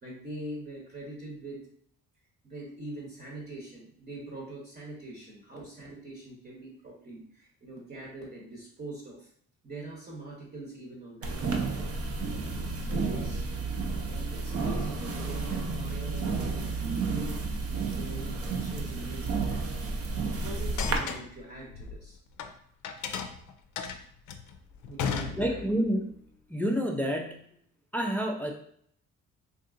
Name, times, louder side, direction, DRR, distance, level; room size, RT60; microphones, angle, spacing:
voice 1, 0.0-1.6 2.4-9.3 9.6-12.3 12.8-13.4 14.0-17.4 17.9-20.0 20.4-22.2 24.9-25.6, right 1 dB, 35° right, -3 dB, 0.9 m, -43 dB
sound 1, 11.2-21.0, right 4 dB, 50° right, 0.6 m, -31 dB
sound 2, 20.8-22.5 22.8-25.9, left 7 dB, 75° left, 0.5 m, -35 dB
voice 2, 25.4-26.1 26.5-27.4 27.9-28.5, equal, 5° left, 2 dB, 0.4 m, -28 dB
3.5 x 2.7 x 2.5 m, 0.64 s
cardioid pair, 90°, 30 cm